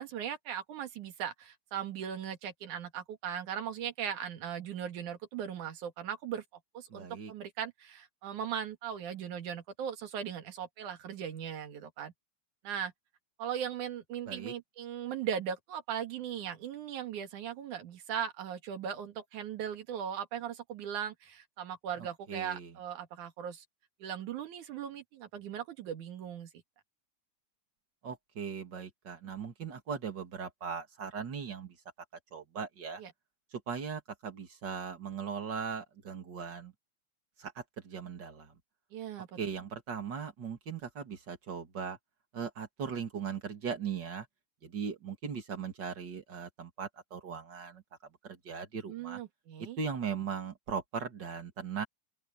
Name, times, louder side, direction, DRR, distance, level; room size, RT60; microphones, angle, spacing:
voice 1, 0.0-6.4 6.7-12.1 12.6-12.9 13.4-23.6 24.0-26.5 33.0-33.1 38.9-39.4 48.9-49.8, right 8 dB, 90° right, 3.3 m, -38 dB
voice 2, 6.9-7.3 14.3-14.5 22.0-22.7 28.0-31.8 32.3-33.0 33.5-36.7 37.4-38.5 39.4-42.0 42.3-44.3 44.6-47.8 48.2-49.2 49.6-51.9, right 6 dB, 40° right, 2.6 m, -39 dB
open air
omnidirectional pair, 3.4 m